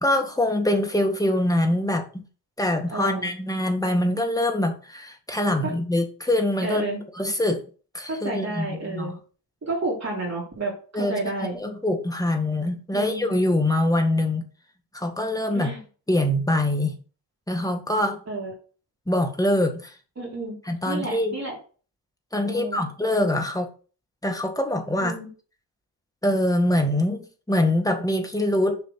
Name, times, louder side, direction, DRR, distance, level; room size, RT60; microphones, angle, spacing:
voice 1, 0.0-2.2 2.6-6.9 7.2-7.6 7.9-9.2 10.9-11.2 11.6-14.4 14.9-15.7 16.1-17.0 17.5-18.2 19.1-19.9 20.7-21.3 22.3-23.7 24.2-25.2 26.2-28.8, left 1 dB, 10° left, 4 dB, 1.8 m, -24 dB
voice 2, 2.9-3.3 5.6-5.7 6.6-7.0 8.1-9.1 9.6-10.7 11.0-11.6 12.9-13.4 15.5-15.8 18.3-18.5 20.2-20.6 20.9-21.6 22.4-22.8 25.0-25.3, right 2 dB, 35° right, -4 dB, 3.5 m, -30 dB
7.3 x 4.9 x 6.3 m, 0.38 s
wide cardioid pair, 110°, 42 cm